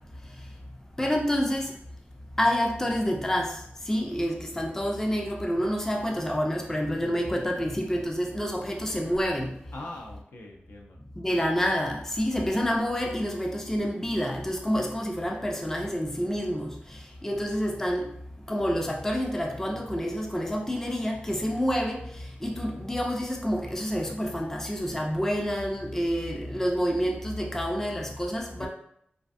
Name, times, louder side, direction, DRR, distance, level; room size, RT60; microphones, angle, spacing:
voice 1, 1.0-1.7 2.4-3.6 3.9-9.5 11.2-18.1 18.5-22.1 22.4-28.7, equal, 10° left, 1 dB, 0.3 m, -28 dB
voice 2, 9.7-11.0 28.6-28.7, left 2 dB, 70° left, 0 dB, 0.5 m, -42 dB
2.5 x 2.2 x 2.4 m, 0.70 s
wide cardioid pair, 85°, 4 cm